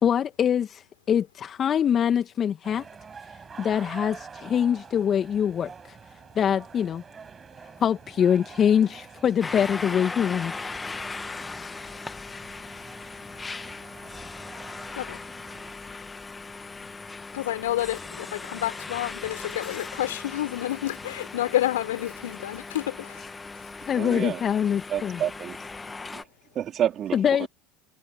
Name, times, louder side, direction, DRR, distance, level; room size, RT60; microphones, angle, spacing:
voice 1, 0.0-2.9 3.6-6.0 6.4-7.0 7.8-10.7 23.9-25.2 27.1-27.5, left 8 dB, 35° left, 1.8 m, -24 dB
sound 1, 2.6-15.8, right 5 dB, 25° right, 4.8 m, -46 dB
sound 2, 9.4-26.2, left 3 dB, 20° left, 1.3 m, -38 dB
voice 2, 17.3-23.6, left 14 dB, 75° left, 4.6 m, -29 dB
voice 3, 24.0-24.4 24.9-25.7 26.0-26.3 26.5-27.5, right 10 dB, 40° right, 3.2 m, -29 dB
hypercardioid pair, 80°, 0 cm